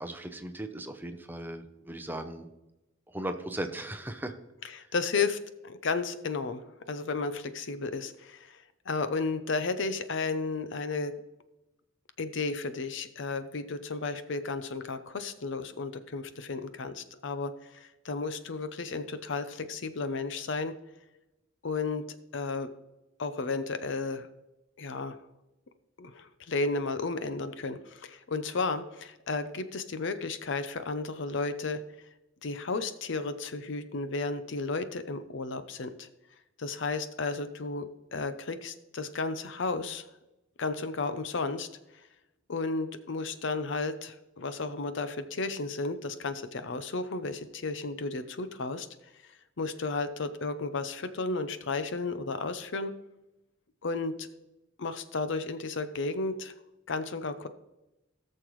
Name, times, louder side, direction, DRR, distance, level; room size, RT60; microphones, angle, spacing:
voice 1, 0.0-2.5 3.1-4.3, right 1 dB, 10° right, 7 dB, 0.7 m, -37 dB
voice 2, 4.7-5.4 5.6-6.6 6.9-11.1 12.2-20.7 21.6-22.0 22.3-22.7 23.2-24.3 24.8-25.2 26.0-31.8 32.4-36.1 36.6-40.0 40.6-41.7 42.5-48.9 49.6-52.9 53.8-54.3 54.8-56.5 56.9-57.5, left 3 dB, 65° left, 11 dB, 0.7 m, -33 dB
17.5 x 6.6 x 3.1 m, 0.96 s
head